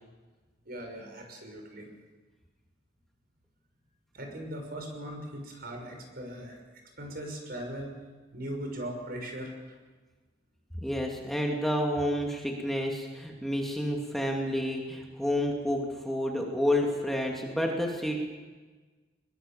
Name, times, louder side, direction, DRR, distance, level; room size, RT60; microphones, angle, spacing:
voice 1, 0.6-1.9 4.1-7.9 8.3-9.7, right 1 dB, 55° right, 3 dB, 6.1 m, -39 dB
voice 2, 10.8-18.2, left 1 dB, ahead, -1 dB, 2.8 m, -29 dB
22.5 x 22.0 x 7.5 m, 1.4 s
head